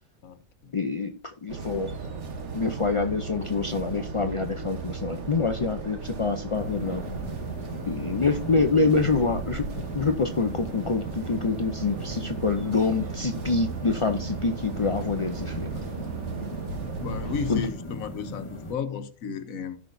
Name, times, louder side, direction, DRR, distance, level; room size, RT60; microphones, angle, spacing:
voice 1, 0.2-0.8 17.0-19.8, left 6 dB, 75° left, 1.4 m, -33 dB
voice 2, 0.7-1.9 2.5-7.0 7.8-9.7 9.9-15.7 17.5-17.6, left 4 dB, 50° left, 0.3 m, -26 dB
sound 1, 1.5-17.7, right 5 dB, 55° right, 1.4 m, -35 dB
sound 2, 6.5-18.7, left 1 dB, 20° left, 1.2 m, -39 dB
16.0 x 6.0 x 2.6 m
omnidirectional pair, 1.5 m